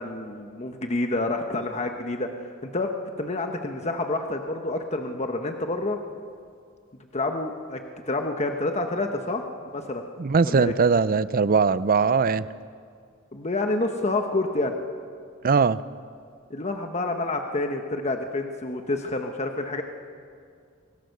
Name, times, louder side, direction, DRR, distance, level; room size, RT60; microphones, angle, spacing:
voice 1, 0.0-2.9 3.2-6.0 7.1-7.8 8.1-9.4 9.7-10.1 10.4-10.7 13.3-14.7 16.5-19.8, left 2 dB, 35° left, 4 dB, 1.1 m, -28 dB
voice 2, 10.2-12.4 15.4-15.8, right 5 dB, 45° right, 16 dB, 0.5 m, -20 dB
25.0 x 18.0 x 6.7 m, 2.2 s
head